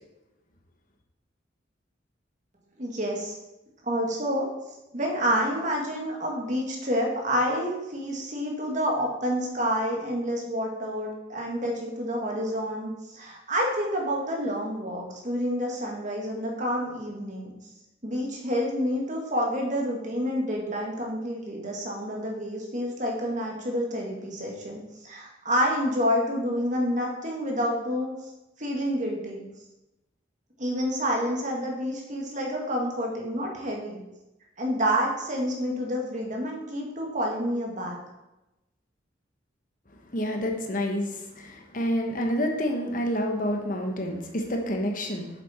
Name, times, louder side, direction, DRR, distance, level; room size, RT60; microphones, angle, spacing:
voice 1, 2.8-3.4 3.8-4.5 4.9-17.5 18.0-24.8 25.0-28.1 28.6-29.4 30.6-34.0 34.6-38.0, equal, 40° right, 0 dB, 1.8 m, -28 dB
voice 2, 40.1-45.3, equal, 45° left, 3 dB, 1.1 m, -28 dB
7.6 x 7.3 x 4.3 m, 0.96 s
head